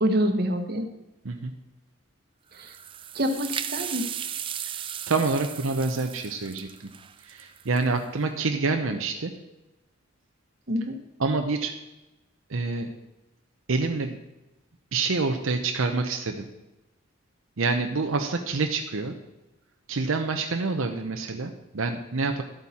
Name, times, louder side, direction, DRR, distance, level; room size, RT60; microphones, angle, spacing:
voice 1, 0.0-0.9 2.5-2.7 3.1-4.0 10.7-11.0, equal, 50° right, 5 dB, 1.2 m, -26 dB
sound 1, 2.5-8.0, right 9 dB, 25° right, 0.3 m, -36 dB
voice 2, 5.1-6.9 7.2-9.3 11.2-11.7 12.5-12.9 13.7-14.2 14.9-16.5 17.6-19.1 19.9-22.4, right 3 dB, 80° right, 4 dB, 0.8 m, -27 dB
12.0 x 8.4 x 4.3 m, 1.0 s
head